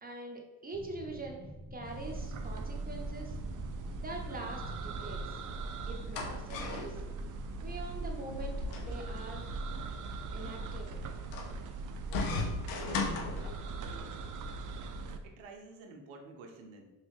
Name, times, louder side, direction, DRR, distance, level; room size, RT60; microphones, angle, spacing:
voice 1, 0.0-3.4 4.0-5.4 5.9-7.0 7.6-9.5 10.3-11.1, right 2 dB, 20° right, 1 dB, 0.8 m, -44 dB
sound 1, 0.7-6.9, equal, 40° left, 0.9 m, -48 dB
sound 2, 1.8-15.2, right 3 dB, 45° right, 0.4 m, -40 dB
sound 3, 5.5-14.0, left 3 dB, 85° left, 0.6 m, -39 dB
voice 2, 13.7-14.2 15.2-16.9, right 3 dB, 80° right, 3 dB, 0.7 m, -51 dB
3.0 x 2.4 x 3.2 m, 1.1 s
hypercardioid pair, 45°, 46 cm